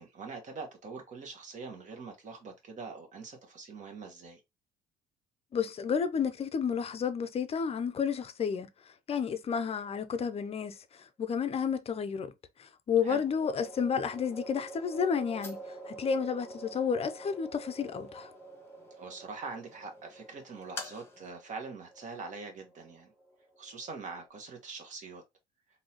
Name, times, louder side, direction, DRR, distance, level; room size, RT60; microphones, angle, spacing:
voice 1, 0.0-4.4 13.0-13.2 19.0-23.1 23.6-25.2, right 4 dB, 45° right, 1.4 m, -43 dB
voice 2, 5.5-8.7 9.1-10.8 11.2-12.3 12.6-15.6 15.9-18.3, left 6 dB, 35° left, 0.6 m, -31 dB
sound 1, 10.1-10.7 12.9-24.3, right 2 dB, 5° right, 0.7 m, -49 dB
sound 2, 13.1-21.3, left 3 dB, 15° left, 1.1 m, -52 dB
3.9 x 2.8 x 2.9 m
cardioid pair, 110°, 17 cm